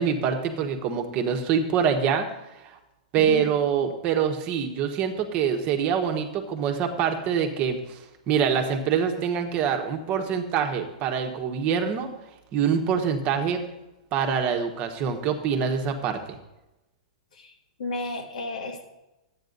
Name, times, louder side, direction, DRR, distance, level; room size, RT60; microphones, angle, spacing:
voice 1, 0.0-2.3 2.6-2.8 3.1-8.0 8.3-12.1 12.5-13.6 14.1-16.4, right 7 dB, 35° right, 5 dB, 1.5 m, -25 dB
voice 2, 3.2-3.5 3.8-3.9 17.3-18.8, left 3 dB, 80° left, 2 dB, 2.1 m, -33 dB
12.0 x 9.1 x 4.0 m, 0.96 s
hypercardioid pair, 130°, 4 cm